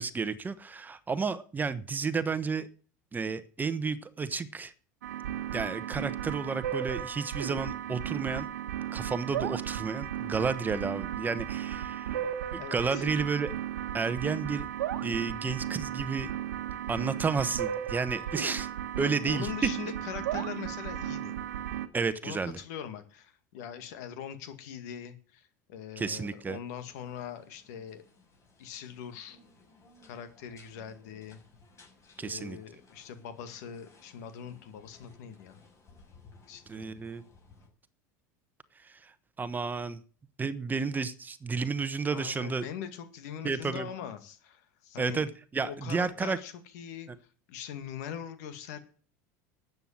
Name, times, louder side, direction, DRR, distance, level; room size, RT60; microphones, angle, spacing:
voice 1, 0.0-2.7 3.1-4.7 5.5-8.5 8.9-12.2 12.5-13.5 13.9-14.7 15.0-16.3 16.9-18.7 19.0-19.5 21.9-22.6 26.0-26.6 32.2-32.6 36.7-37.2 38.8-39.1 39.4-40.0 40.4-42.6 43.4-43.9 45.0-46.4, right 5 dB, 20° right, 13 dB, 1.1 m, -32 dB
sound 1, 5.0-21.9, right 10 dB, 90° right, 1.3 m, -35 dB
voice 2, 12.6-13.0 19.0-21.4 22.2-28.0 28.6-29.4 30.1-31.4 32.2-35.6 36.5-36.9 42.1-45.2 45.7-47.1 47.5-48.8, left 9 dB, 75° left, 9 dB, 2.1 m, -42 dB
sound 2, 26.2-37.7, left 3 dB, 35° left, 6.1 m, -59 dB
12.5 x 8.1 x 7.4 m, 0.42 s
hypercardioid pair, 100°, 9 cm